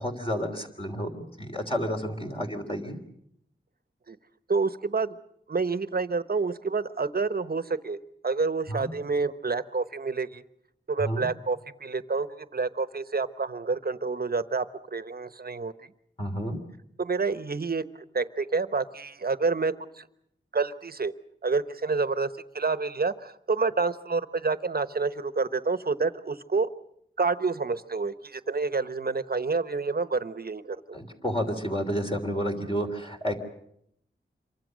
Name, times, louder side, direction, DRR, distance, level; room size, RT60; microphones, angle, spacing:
voice 1, 0.0-3.0 8.7-8.9 11.0-11.3 16.2-16.6 30.9-33.4, equal, 30° left, 2 dB, 3.2 m, -30 dB
voice 2, 4.5-5.2 5.5-8.0 8.2-10.4 10.9-15.7 17.0-20.1 20.5-21.1 21.4-26.7 27.2-30.8, right 4 dB, 50° right, 12 dB, 1.1 m, -28 dB
27.0 x 24.0 x 6.4 m, 0.75 s
wide cardioid pair, 75°, 20 cm